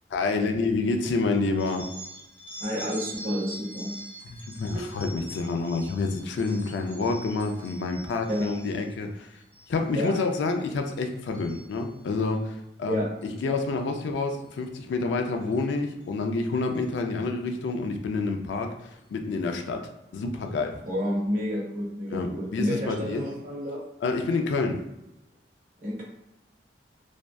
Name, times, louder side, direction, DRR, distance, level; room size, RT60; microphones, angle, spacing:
voice 1, 0.1-1.9 4.2-9.4 9.7-20.8 22.1-23.3 24.0-24.8, left 3 dB, 80° left, 4 dB, 0.3 m, -28 dB
sound 1, 1.6-8.9 9.4-9.8 10.1-10.5 10.9-12.2 13.2-13.4 14.4-14.6 15.5-15.6 16.0-16.1 16.6-16.9, right 1 dB, 10° left, 0.5 m, -44 dB
voice 2, 2.6-4.0 8.3-8.5 9.9-10.1 12.9-13.1 20.8-23.8 25.8-26.0, equal, 45° right, -3 dB, 0.7 m, -30 dB
2.5 x 2.2 x 2.2 m, 0.87 s
head